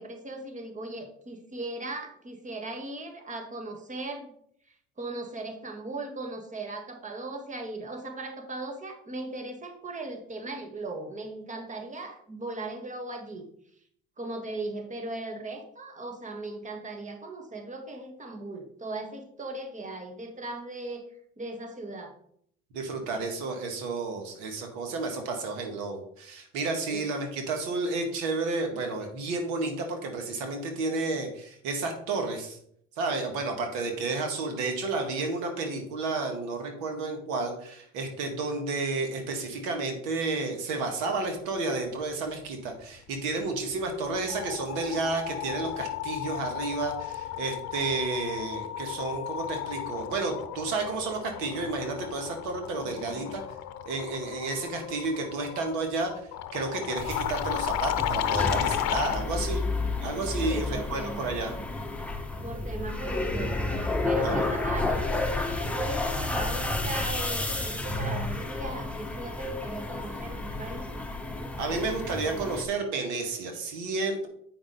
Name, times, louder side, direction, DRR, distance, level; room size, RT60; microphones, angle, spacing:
voice 1, 0.0-4.3 5.0-13.5 14.2-21.0 21.4-22.1 26.9-27.1 52.9-53.3 60.4-61.2 62.4-63.7 64.0-70.9, right 2 dB, 25° right, 5 dB, 1.6 m, -37 dB
voice 2, 22.7-32.6 33.0-53.4 53.8-56.1 56.5-59.6 60.0-61.5 64.2-64.5 71.6-74.3, right 3 dB, 85° right, 4 dB, 1.7 m, -31 dB
sound 1, 43.4-43.7 44.0-59.3, left 12 dB, 65° left, 0.7 m, -34 dB
sound 2, 57.0-72.6, left 2 dB, 5° left, 1.2 m, -31 dB
8.6 x 5.5 x 4.0 m, 0.67 s
supercardioid pair, 80°, 29 cm